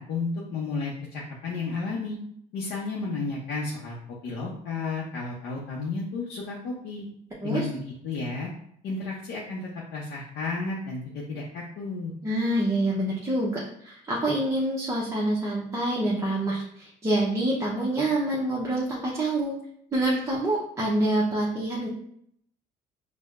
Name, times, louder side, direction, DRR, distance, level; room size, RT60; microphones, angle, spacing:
voice 1, 0.0-2.2 2.5-3.9 4.2-7.1 7.4-8.5 8.8-12.1, left 3 dB, 75° left, -4 dB, 0.7 m, -32 dB
voice 2, 12.2-19.5 19.9-21.9, right 1 dB, 20° right, -6 dB, 0.7 m, -26 dB
4.4 x 2.1 x 2.4 m, 0.69 s
cardioid pair, 110°, 17 cm